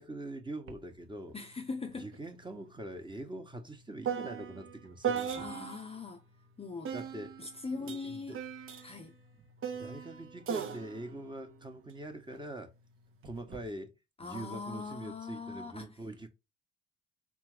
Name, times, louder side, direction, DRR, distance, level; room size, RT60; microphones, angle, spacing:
voice 1, 0.0-1.4 1.9-5.5 6.9-7.4 7.7-8.4 9.4-9.5 9.7-12.7 13.2-13.9 14.2-16.3, right 1 dB, 15° right, 1.1 m, -43 dB
sound 1, 0.7-0.8 1.2-5.9 6.8-12.4 13.2-13.7, right 7 dB, 45° right, 0.9 m, -39 dB
voice 2, 1.3-2.1 5.4-6.2 6.6-6.9 7.4-8.4 8.8-9.1 14.2-15.9, left 4 dB, 20° left, 0.6 m, -41 dB
3.7 x 3.3 x 3.4 m
supercardioid pair, 75°, 29 cm